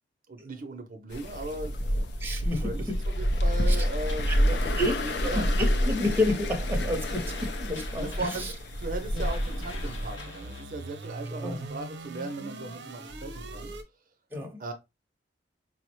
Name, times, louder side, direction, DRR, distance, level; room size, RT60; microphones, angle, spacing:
voice 1, 0.3-1.8 2.6-4.7 5.0-5.6 8.0-8.5 8.8-13.7 14.6-14.7, right 2 dB, 50° right, 0.6 m, -37 dB
sound 1, 1.1-10.2, equal, 65° left, 0.5 m, -28 dB
voice 2, 2.2-3.0 3.7-3.9 4.3-4.4 4.8-8.5 9.1-9.3 11.4-11.7 14.3-14.6, left 1 dB, 10° right, 0.7 m, -30 dB
sound 2, 2.5-13.8, right 2 dB, 80° right, 0.7 m, -44 dB
sound 3, 4.1-10.6, left 2 dB, 85° left, 0.8 m, -47 dB
4.7 x 2.0 x 3.0 m
head